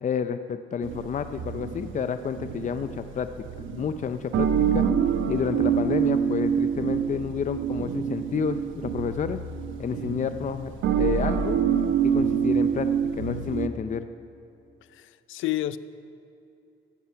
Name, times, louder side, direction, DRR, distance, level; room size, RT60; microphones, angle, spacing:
voice 1, 0.0-3.3 3.6-4.9 5.3-9.4 9.8-10.7 11.0-11.6 12.0-12.9 13.2-14.1, left 6 dB, 40° left, 10 dB, 0.6 m, -30 dB
sound 1, 0.8-13.7, right 7 dB, 80° right, 1.0 m, -26 dB
voice 2, 14.9-15.8, left 14 dB, 85° left, 15 dB, 0.5 m, -30 dB
15.5 x 11.5 x 5.7 m, 2.7 s
cardioid pair, 90°, 20 cm